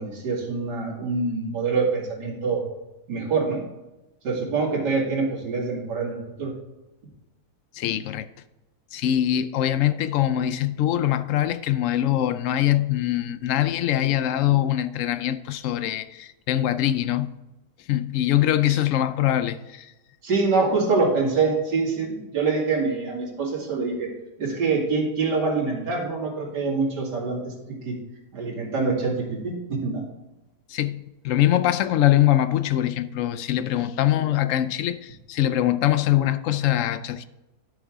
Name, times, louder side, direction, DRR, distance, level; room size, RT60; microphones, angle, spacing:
voice 1, 0.0-2.6 3.1-3.6 4.2-6.5 18.7-18.8 20.2-24.1 24.4-28.0 28.3-30.0, right 4 dB, 80° right, 2.8 m, -25 dB
voice 2, 7.7-8.3 8.9-17.4 17.9-19.9 30.7-37.2, left 12 dB, 70° left, 0.7 m, -23 dB
11.0 x 7.0 x 3.6 m
omnidirectional pair, 1.8 m